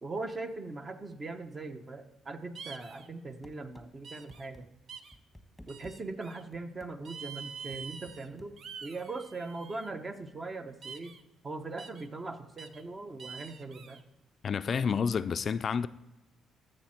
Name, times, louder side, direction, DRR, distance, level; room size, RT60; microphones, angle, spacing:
voice 1, 0.0-4.7 5.7-8.6 8.8-11.1 11.4-14.0, right 3 dB, 30° right, 0.9 m, -40 dB
sound 1, 2.5-3.1 4.0-4.5 4.9-5.2 5.7-6.4 7.0-8.3 8.6-9.9 10.8-11.2 11.8-12.1 12.6-12.8 13.2-14.0, right 6 dB, 60° right, 0.7 m, -46 dB
sound 2, 3.4-3.9 4.3-4.6 5.1-6.0 6.5-6.9 7.7-8.5, left 1 dB, ahead, 1.3 m, -52 dB
voice 2, 14.4-15.9, left 6 dB, 50° left, 0.3 m, -29 dB
13.5 x 6.4 x 4.4 m
cardioid pair, 85°, 0 cm